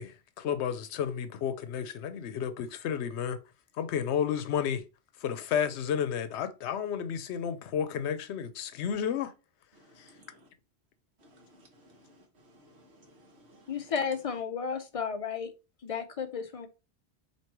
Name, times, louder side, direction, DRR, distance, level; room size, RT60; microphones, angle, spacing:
voice 1, 0.0-3.4 3.8-4.8 5.2-9.3 10.0-10.1, left 8 dB, 85° left, 0.9 m, -32 dB
voice 2, 9.7-10.5 11.2-13.9, equal, 75° right, 1.3 m, -59 dB
voice 3, 13.7-15.5 15.8-16.7, left 6 dB, 50° left, 0.4 m, -33 dB
3.0 x 2.9 x 4.5 m
omnidirectional pair, 1.1 m